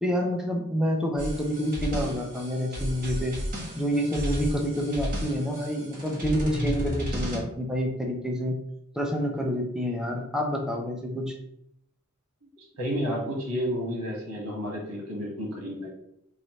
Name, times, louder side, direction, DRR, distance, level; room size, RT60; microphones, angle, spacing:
voice 1, 0.0-3.4 3.7-8.6 8.9-11.3, equal, 5° right, 0 dB, 0.5 m, -28 dB
sound 1, 1.2-7.4, equal, 40° right, 1.2 m, -33 dB
voice 2, 12.6-15.9, equal, 90° right, -1 dB, 1.3 m, -31 dB
3.1 x 2.6 x 4.2 m, 0.75 s
head